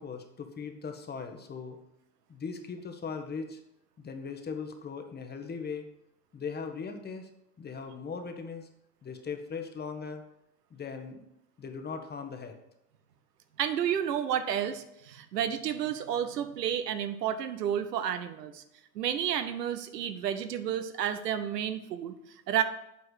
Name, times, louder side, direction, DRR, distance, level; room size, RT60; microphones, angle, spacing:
voice 1, 0.0-1.8 2.3-3.6 4.0-5.8 6.3-7.3 7.6-8.7 9.0-10.2 10.7-11.2 11.6-12.6, left 5 dB, 20° left, 6 dB, 1.1 m, -39 dB
voice 2, 13.6-18.6 18.9-22.1 22.5-22.6, right 9 dB, 80° right, 10 dB, 0.9 m, -31 dB
8.2 x 4.6 x 6.2 m, 0.82 s
hypercardioid pair, 85°, 48 cm